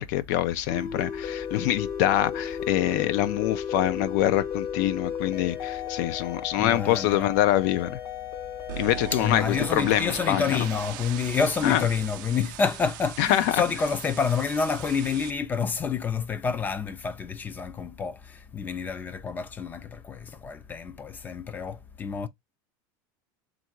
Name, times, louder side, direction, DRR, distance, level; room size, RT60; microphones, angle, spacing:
voice 1, 0.0-8.0 8.8-10.7 11.6-11.8 13.2-13.6, left 13 dB, 65° left, 0.5 m, -25 dB
sound 1, 0.7-11.0, left 8 dB, 45° left, 1.0 m, -35 dB
voice 2, 6.6-7.3 9.1-22.3, left 6 dB, 15° left, 0.4 m, -28 dB
sound 2, 8.7-15.3, right 16 dB, 75° right, 0.4 m, -40 dB
3.6 x 2.6 x 4.4 m
supercardioid pair, 145°, 10 cm